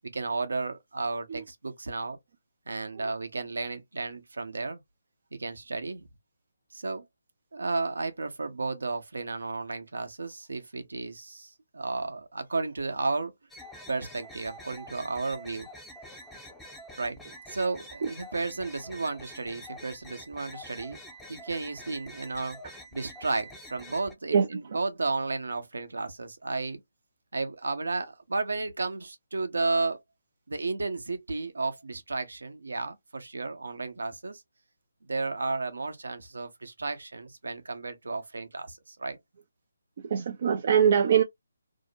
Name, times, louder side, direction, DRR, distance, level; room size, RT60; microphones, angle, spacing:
voice 1, 0.1-2.2 2.7-4.8 5.3-6.1 6.7-7.0 7.5-13.3 13.9-15.7 17.0-17.2 17.5-21.0 21.3-26.8 27.3-30.0 30.5-34.4 35.1-39.2, right 3 dB, 70° right, 0.7 m, -33 dB
sound 1, 13.5-24.1, equal, ahead, 0.5 m, -47 dB
voice 2, 40.0-41.2, right 7 dB, 45° right, 0.4 m, -22 dB
2.7 x 2.0 x 2.7 m
figure-of-eight pair, 145°, 0 cm